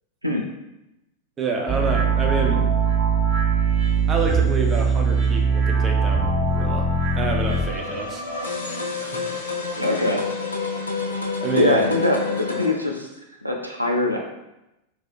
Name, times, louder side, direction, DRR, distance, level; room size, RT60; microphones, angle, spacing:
voice 1, 1.4-2.7 4.1-6.9 7.1-8.2 9.0-9.3 11.4-11.8, right 3 dB, 25° right, 2 dB, 0.4 m, -28 dB
sound 1, 1.7-7.6, right 4 dB, 45° right, 0.9 m, -21 dB
sound 2, 7.1-12.7, left 4 dB, 75° left, 0.4 m, -29 dB
voice 2, 9.8-10.2 11.5-13.1 13.4-14.2, left 2 dB, 90° right, -1 dB, 0.3 m, -22 dB
2.5 x 2.3 x 2.3 m, 0.92 s
figure-of-eight pair, 90°, 0 cm